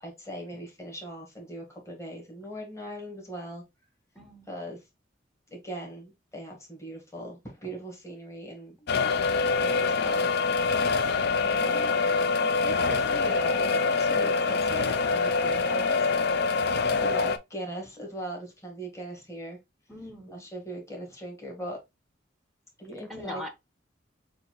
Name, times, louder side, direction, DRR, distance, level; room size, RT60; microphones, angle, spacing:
voice 1, 0.0-3.6 4.5-4.8 5.5-10.3 11.4-12.0 12.4-15.9 17.0-19.6 20.3-21.8 22.8-23.4, equal, 15° left, 1.5 m, -39 dB
voice 2, 4.1-4.5 15.5-16.0 19.9-20.4 22.8-23.5, equal, ahead, 0.7 m, -43 dB
sound 1, 8.9-17.4, left 4 dB, 60° left, 0.5 m, -25 dB
6.5 x 2.4 x 3.0 m
head